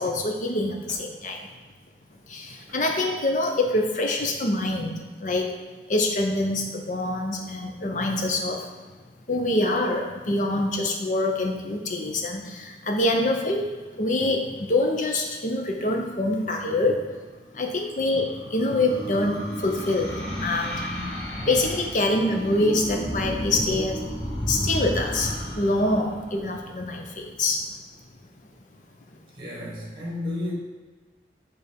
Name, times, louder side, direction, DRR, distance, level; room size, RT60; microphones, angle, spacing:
voice 1, 0.0-1.5 2.3-5.5 5.9-8.6 9.3-13.6 14.0-17.1 17.5-20.8 21.5-24.1 24.4-27.6, left 2 dB, 45° left, 2 dB, 0.8 m, -25 dB
voice 2, 2.5-2.8 29.3-30.5, left 2 dB, 30° right, -4 dB, 1.7 m, -33 dB
sound 1, 17.6-27.1, equal, 80° left, 1.7 m, -33 dB
6.6 x 3.5 x 5.2 m, 1.3 s
head